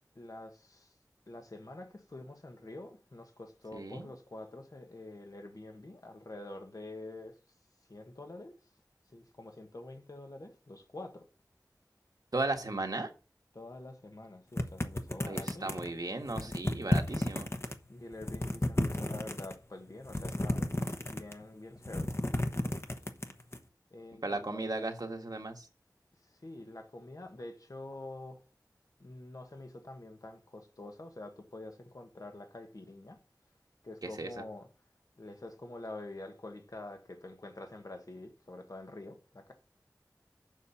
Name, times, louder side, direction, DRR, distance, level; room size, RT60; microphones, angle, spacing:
voice 1, 0.1-1.0 1.3-7.4 7.9-8.7 9.1-11.2 13.5-15.8 17.9-20.7 21.1-22.2 23.9-24.7 26.2-28.4 29.0-33.2 33.8-34.7 35.2-39.5, left 2 dB, 65° left, 1.5 m, -47 dB
voice 2, 3.7-4.1 12.3-13.1 15.3-17.5 24.2-25.7 34.0-34.4, right 2 dB, 75° right, 1.6 m, -36 dB
sound 1, 14.6-15.9 16.3-17.7 18.1-19.6 20.1-21.4 21.8-23.6, left 1 dB, 40° left, 1.1 m, -32 dB
7.3 x 5.5 x 7.1 m
wide cardioid pair, 50°, 7 cm